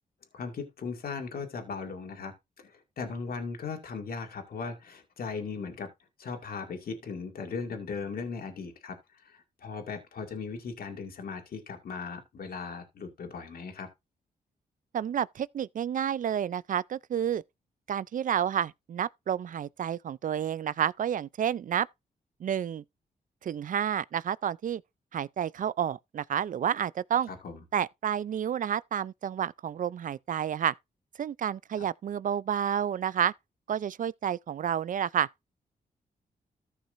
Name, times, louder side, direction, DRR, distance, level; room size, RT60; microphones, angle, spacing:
voice 1, 0.3-5.9 6.2-13.9 27.3-27.6, left 5 dB, 70° left, 2.3 m, -38 dB
voice 2, 14.9-17.4 17.9-21.9 22.4-22.8 23.4-24.8 25.1-27.3 27.7-30.7 31.2-33.3 33.7-35.3, right 9 dB, 55° right, 0.4 m, -30 dB
14.5 x 5.7 x 2.6 m
cardioid pair, 65°, 16 cm